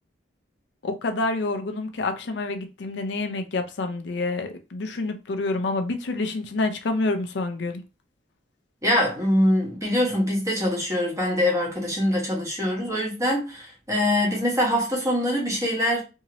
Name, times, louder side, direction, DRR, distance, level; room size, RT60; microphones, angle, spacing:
voice 1, 0.8-7.8, left 2 dB, 75° left, 0.5 m, -28 dB
voice 2, 8.8-16.0, left 1 dB, 20° right, 1.2 m, -23 dB
2.8 x 2.7 x 2.9 m
head